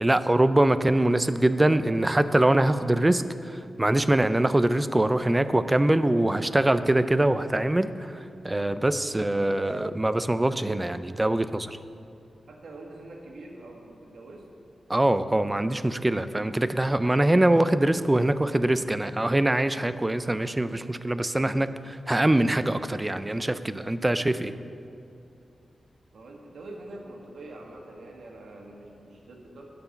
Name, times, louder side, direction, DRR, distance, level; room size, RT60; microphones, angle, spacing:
voice 1, 0.0-11.8 14.9-24.5, right 1 dB, 15° right, 12 dB, 0.3 m, -23 dB
voice 2, 12.5-14.4 26.1-29.7, right 2 dB, 80° right, 0 dB, 1.4 m, -44 dB
9.2 x 5.6 x 6.9 m, 2.6 s
wide cardioid pair, 95°, 0 cm